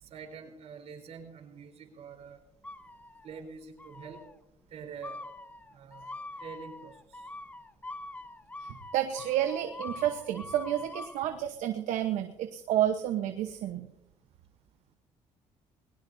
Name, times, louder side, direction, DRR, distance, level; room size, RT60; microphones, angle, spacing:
voice 1, 0.0-2.4 3.2-4.2 4.7-5.2 5.7-6.1 6.4-7.3, right 6 dB, 60° right, 4 dB, 4.1 m, -46 dB
sound 1, 2.6-3.4 3.8-4.3 5.0-11.3, left 2 dB, 10° left, 0.8 m, -44 dB
voice 2, 8.6-13.9, right 11 dB, 75° right, 7 dB, 1.1 m, -30 dB
21.0 x 18.5 x 2.7 m, 0.84 s
cardioid pair, 100°, 12 cm